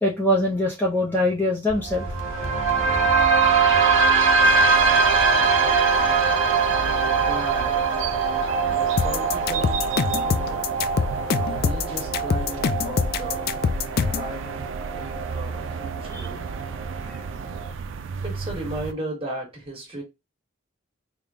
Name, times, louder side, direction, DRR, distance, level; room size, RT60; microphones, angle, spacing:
voice 1, 0.0-2.1 4.9-5.0 16.1-16.2 17.0-17.2, left 1 dB, 10° left, 0.6 m, -23 dB
sound 1, 1.7-17.7, right 4 dB, 85° right, 1.2 m, -23 dB
sound 2, 4.4-18.9, right 5 dB, 65° right, 0.4 m, -34 dB
voice 2, 7.2-8.1 8.7-10.6 11.4-13.7 14.1-14.6 14.9-16.5 18.2-20.0, right 1 dB, 30° right, 1.5 m, -36 dB
sound 3, 9.0-14.3, left 6 dB, 50° left, 0.3 m, -24 dB
3.5 x 2.2 x 3.7 m
head